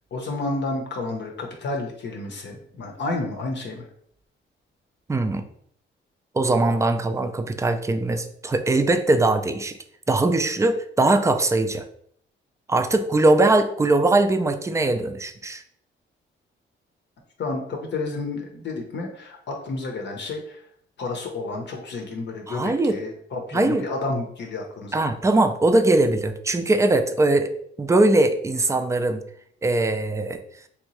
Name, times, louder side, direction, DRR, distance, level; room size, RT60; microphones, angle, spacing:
voice 1, 0.1-3.9 17.4-20.6 21.0-25.1, left 3 dB, 60° left, 1 dB, 0.7 m, -31 dB
voice 2, 5.1-5.4 6.3-9.8 10.1-11.8 12.7-15.6 22.5-23.0 23.5-23.9 24.9-27.5 27.8-29.2 29.6-30.4, right 2 dB, 15° right, 8 dB, 0.3 m, -21 dB
3.4 x 2.8 x 2.9 m, 0.66 s
cardioid pair, 100°, 21 cm